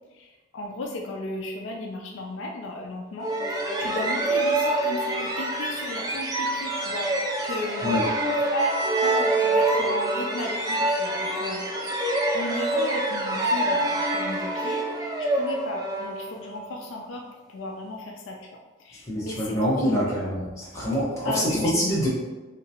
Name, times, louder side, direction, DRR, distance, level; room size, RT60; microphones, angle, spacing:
voice 1, 0.2-7.1 7.4-8.7 9.0-20.1 21.2-21.9, left 1 dB, 65° left, 1 dB, 0.3 m, -35 dB
sound 1, 3.2-16.7, right 2 dB, 20° right, 0.3 m, -26 dB
voice 2, 19.1-22.1, equal, 15° left, -7 dB, 0.9 m, -25 dB
3.3 x 2.8 x 2.8 m, 1.2 s
head